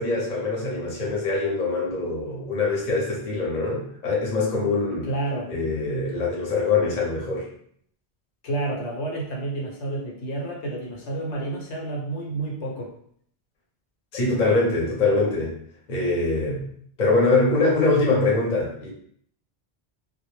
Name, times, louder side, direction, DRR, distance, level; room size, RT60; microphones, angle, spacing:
voice 1, 0.0-5.1 5.5-7.5 14.1-15.5 15.9-16.6 17.0-18.9, left 3 dB, 45° left, -3 dB, 0.8 m, -23 dB
voice 2, 5.0-5.5 8.4-12.9, right 2 dB, 80° left, -2 dB, 1.0 m, -30 dB
2.2 x 2.0 x 3.0 m, 0.64 s
omnidirectional pair, 1.1 m